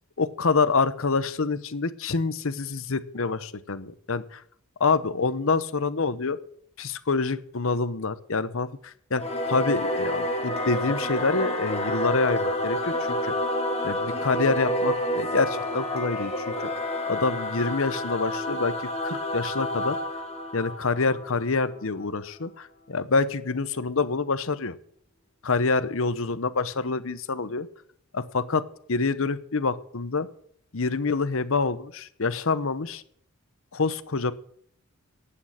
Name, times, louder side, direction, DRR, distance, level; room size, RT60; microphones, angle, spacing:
voice 1, 0.2-4.2 4.8-6.4 6.8-9.2 9.5-13.3 13.8-16.5 17.1-20.0 20.5-24.8 25.4-27.7 28.1-28.6 28.9-30.3 30.7-33.0 33.7-34.3, left 4 dB, 65° left, 14 dB, 0.9 m, -26 dB
Singing / Musical instrument, 9.2-22.1, left 1 dB, 30° left, 2.1 m, -29 dB
11.5 x 8.9 x 8.8 m, 0.65 s
head